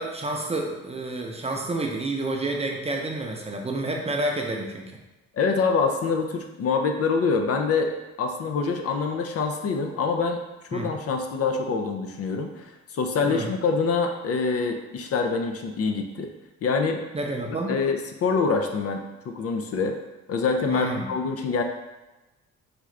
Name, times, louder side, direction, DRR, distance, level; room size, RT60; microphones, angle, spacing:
voice 1, 0.0-4.8 10.7-10.9 13.2-13.5 17.1-17.7 20.7-21.1, right 2 dB, 20° right, 1 dB, 0.6 m, -29 dB
voice 2, 5.3-7.9 8.2-10.4 10.7-16.3 16.6-17.0 17.7-20.0 20.3-21.6, left 4 dB, 50° left, 4 dB, 0.5 m, -25 dB
4.9 x 2.4 x 3.2 m, 1.0 s
cardioid pair, 90°, 30 cm